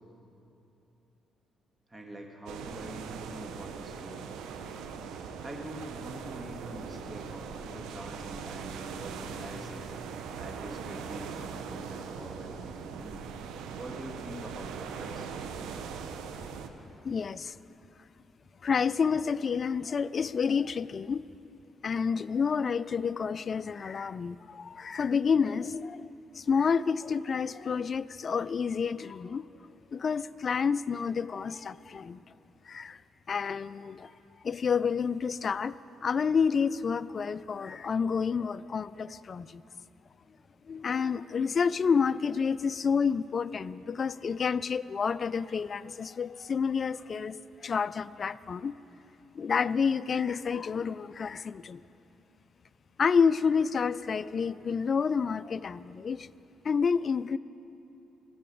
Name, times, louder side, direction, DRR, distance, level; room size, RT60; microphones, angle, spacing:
voice 1, 1.9-4.3 5.4-9.8 10.3-13.3 13.7-15.3, right 1 dB, 20° right, 1 dB, 1.7 m, -44 dB
sound 1, 2.5-16.7, right 6 dB, 90° right, 0.8 m, -40 dB
voice 2, 17.0-17.5 18.6-21.2 21.8-29.4 29.9-32.2 32.7-33.0 33.3-34.1 34.4-35.8 36.0-39.6 40.7-47.4 47.6-48.7 49.4-51.8 53.0-56.3 56.6-57.4, left 6 dB, 45° left, 16 dB, 0.3 m, -29 dB
14.5 x 7.8 x 8.6 m, 3.0 s
cardioid pair, 90°, 0 cm